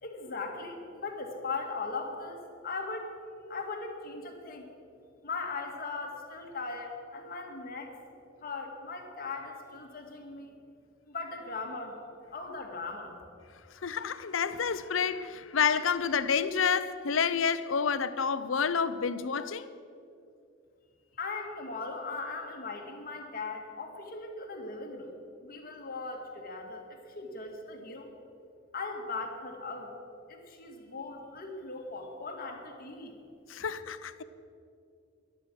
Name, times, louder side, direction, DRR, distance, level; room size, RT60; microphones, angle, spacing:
voice 1, 0.0-3.1 3.5-4.7 5.2-7.9 8.4-10.6 11.1-12.0 12.3-13.2 21.1-25.1 25.4-28.1 28.7-30.0 30.3-33.1, left 3 dB, 45° left, 1.9 m, -39 dB
voice 2, 13.8-19.7 33.5-34.2, left 6 dB, 75° left, 0.6 m, -29 dB
14.0 x 11.0 x 6.2 m
head